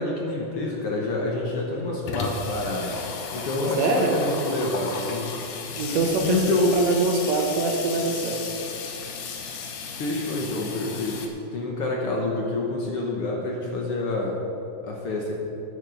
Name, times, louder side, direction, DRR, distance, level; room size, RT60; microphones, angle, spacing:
voice 1, 0.0-3.0 3.3-5.5 6.2-6.8 9.9-14.4 14.8-15.3, left 2 dB, 60° left, -1 dB, 1.7 m, -27 dB
Water tap faucet / Sink (filling or washing), 0.7-0.8 1.0-1.1 1.4-11.3, left 5 dB, 80° left, 2.5 m, -34 dB
voice 2, 3.8-4.1 5.8-8.4, right 3 dB, 70° right, 2 dB, 2.0 m, -24 dB
11.0 x 10.0 x 5.1 m, 2.8 s
omnidirectional pair, 3.5 m